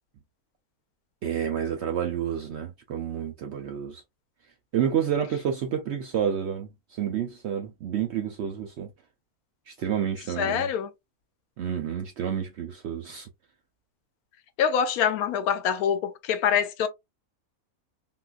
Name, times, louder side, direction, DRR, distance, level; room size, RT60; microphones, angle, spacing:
voice 1, 1.2-4.0 4.7-8.9 9.7-10.7 11.6-13.3, right 9 dB, 65° right, 0.7 m, -29 dB
voice 2, 10.4-10.9 14.6-16.9, left 8 dB, 80° left, 1.1 m, -25 dB
3.7 x 2.4 x 2.4 m
omnidirectional pair, 1.6 m